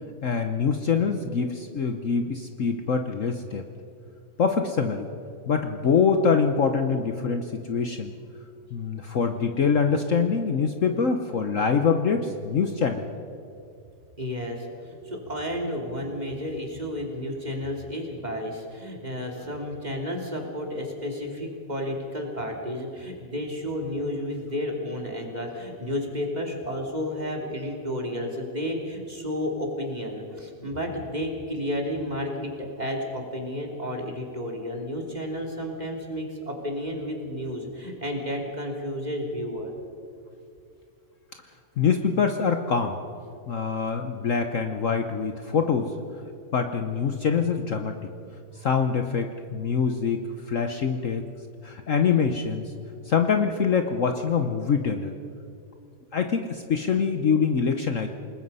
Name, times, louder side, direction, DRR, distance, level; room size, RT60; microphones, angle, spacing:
voice 1, 0.2-3.7 4.4-5.1 5.5-8.1 8.7-13.0 41.8-42.9 43.5-46.0 46.5-48.0 48.5-51.2 51.6-52.7 53.0-55.1 56.1-58.1, left 6 dB, 55° left, 6 dB, 1.2 m, -24 dB
voice 2, 14.2-39.7, left 1 dB, 25° right, 0 dB, 3.2 m, -32 dB
28.5 x 19.5 x 5.6 m, 2.5 s
omnidirectional pair, 1.8 m